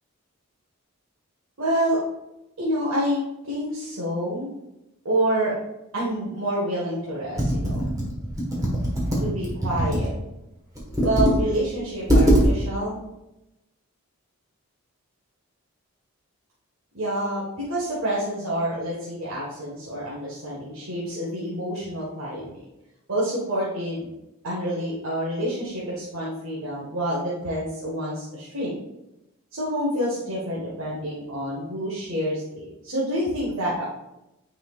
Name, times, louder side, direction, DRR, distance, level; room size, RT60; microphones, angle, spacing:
voice 1, 1.6-2.0 2.6-3.2 3.5-4.5 5.0-5.5 5.9-7.8 9.2-10.1 11.0-13.0 16.9-22.6 23.1-24.1 24.4-28.7 29.5-33.8, right 1 dB, 70° right, -7 dB, 1.6 m, -27 dB
Computer keyboard, 7.4-10.1 10.8-11.4 11.7-11.8 12.1-12.5, equal, 15° right, 1.5 m, -21 dB
9.5 x 4.9 x 2.5 m, 0.92 s
head